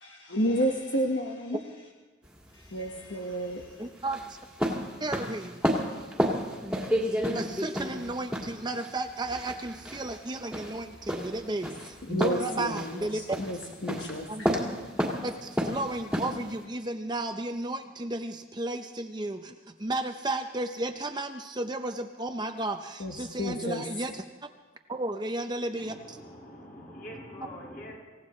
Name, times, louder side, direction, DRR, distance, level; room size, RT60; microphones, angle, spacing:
voice 1, 0.0-1.6 2.5-3.9 12.0-14.3 23.0-23.8, equal, 65° left, 0 dB, 1.4 m, -31 dB
sound 1, 2.2-16.6, equal, 5° right, 2.0 m, -32 dB
voice 2, 3.8-4.4 5.0-5.6 7.3-13.4 14.3-14.5 15.2-24.2 24.9-26.2, right 2 dB, 20° right, 6 dB, 0.6 m, -33 dB
voice 3, 25.8-27.9, equal, 45° left, -3 dB, 5.7 m, -44 dB
26.5 x 17.0 x 3.2 m, 1.4 s
head